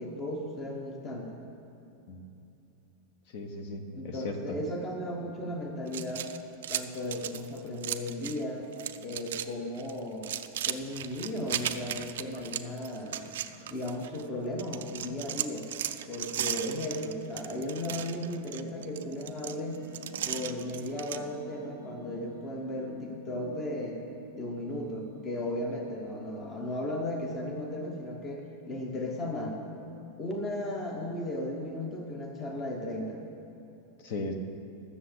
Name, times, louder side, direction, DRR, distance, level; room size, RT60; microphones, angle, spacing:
voice 1, 0.0-1.4 3.9-6.3 6.7-8.7 9.0-10.3 10.6-13.2 13.7-15.7 16.1-19.9 20.2-24.0 24.3-29.6 30.2-33.2, left 1 dB, 20° left, 1 dB, 1.0 m, -35 dB
voice 2, 3.3-4.6 34.0-34.3, left 2 dB, 45° left, 5 dB, 1.1 m, -36 dB
sound 1, 5.9-8.4 8.7-9.5 9.8-14.2 14.6-21.2, right 11 dB, 80° right, 0.5 m, -36 dB
sound 2, 17.8-28.8, left 1 dB, 80° left, 2.7 m, -50 dB
12.5 x 6.8 x 7.9 m, 2.9 s
supercardioid pair, 175°, 0 cm